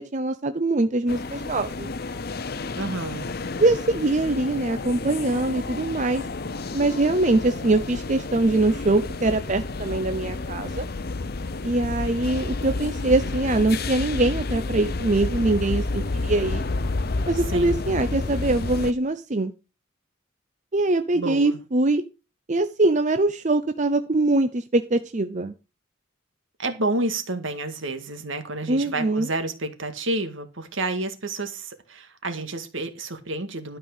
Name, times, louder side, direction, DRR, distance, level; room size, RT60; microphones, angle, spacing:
voice 1, 0.0-1.9 3.6-6.3 6.7-10.8 11.6-16.6 17.3-19.5 20.7-22.0 22.5-25.5 28.7-29.3, right 2 dB, 35° right, 0.7 m, -23 dB
sound 1, 1.1-18.9, left 3 dB, 50° left, 0.7 m, -30 dB
voice 2, 2.8-3.3 17.5-17.8 21.1-21.6 26.6-33.8, right 2 dB, 70° right, 1.9 m, -30 dB
12.5 x 5.5 x 6.6 m
head